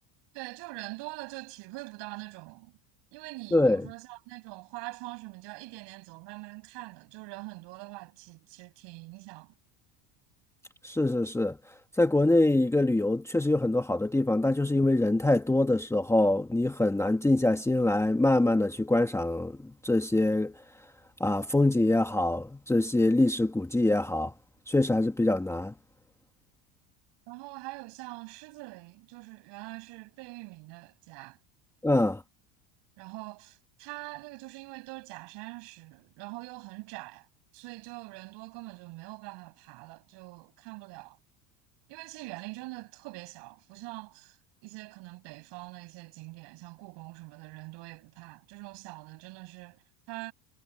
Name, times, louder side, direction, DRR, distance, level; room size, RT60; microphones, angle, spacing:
voice 1, 0.3-2.7 3.1-9.5 27.3-31.4 33.0-37.3 37.5-41.2 41.9-44.4 44.6-50.3, right 23 dB, 60° right, 7.7 m, -44 dB
voice 2, 3.5-3.9 10.8-11.6 12.0-20.5 21.2-24.3 24.7-25.7 31.8-32.2, left 2 dB, 5° left, 1.6 m, -24 dB
supercardioid pair, 130°, 46 cm